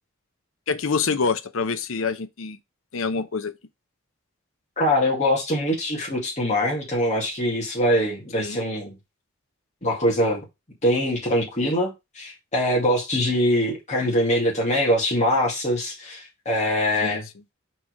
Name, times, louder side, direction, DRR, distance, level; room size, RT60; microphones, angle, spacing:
voice 1, 0.7-2.6 2.9-3.5 8.4-8.6 17.0-17.2, left 5 dB, 65° left, 0.6 m, -26 dB
voice 2, 4.8-9.0 9.8-10.4 10.8-17.3, equal, 35° left, 2.2 m, -23 dB
4.6 x 4.3 x 4.7 m
head